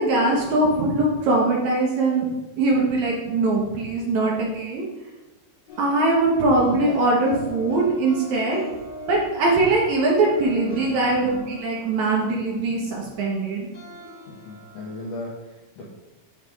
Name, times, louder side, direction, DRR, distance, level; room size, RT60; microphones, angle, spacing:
voice 1, 0.0-2.3 2.6-4.8 5.8-8.6 9.1-13.7, right 2 dB, 65° right, -3 dB, 2.1 m, -21 dB
sound 1, 5.7-15.1, left 2 dB, 40° left, 2.5 m, -40 dB
voice 2, 14.3-15.9, left 1 dB, 70° left, -5 dB, 1.5 m, -37 dB
11.5 x 4.8 x 2.4 m, 1.1 s
omnidirectional pair, 4.1 m